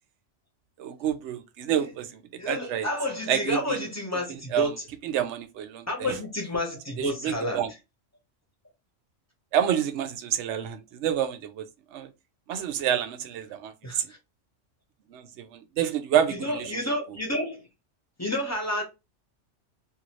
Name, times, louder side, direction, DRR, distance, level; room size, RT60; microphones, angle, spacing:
voice 1, 0.8-2.9 3.3-3.8 4.5-4.7 5.0-6.2 7.0-7.7 9.5-11.7 11.9-12.1 12.5-14.1 15.1-16.7, right 10 dB, 75° right, 0.8 m, -28 dB
voice 2, 2.4-4.7 5.9-7.7 13.8-14.2 16.3-17.6 18.2-18.8, left 1 dB, 15° left, 0.9 m, -30 dB
2.7 x 2.6 x 2.9 m
omnidirectional pair, 1.2 m